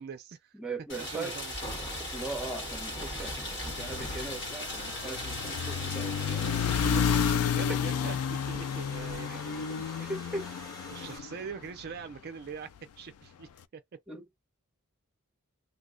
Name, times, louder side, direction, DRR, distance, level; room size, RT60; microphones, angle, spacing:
voice 1, 0.0-0.6 1.0-1.6 6.4-9.6 10.9-12.7 13.0-13.8, right 6 dB, 45° right, 0.4 m, -43 dB
voice 2, 0.5-1.4 2.1-6.6 7.6-7.8 9.3-9.4 10.0-10.5 14.1-14.3, right 2 dB, 5° right, 0.8 m, -39 dB
Rain, 0.9-7.3, left 1 dB, 60° left, 1.4 m, -38 dB
sound 1, 1.6-11.2, right 1 dB, 20° left, 1.0 m, -45 dB
sound 2, 3.7-12.0, left 7 dB, 85° left, 0.4 m, -31 dB
2.7 x 2.1 x 3.7 m
head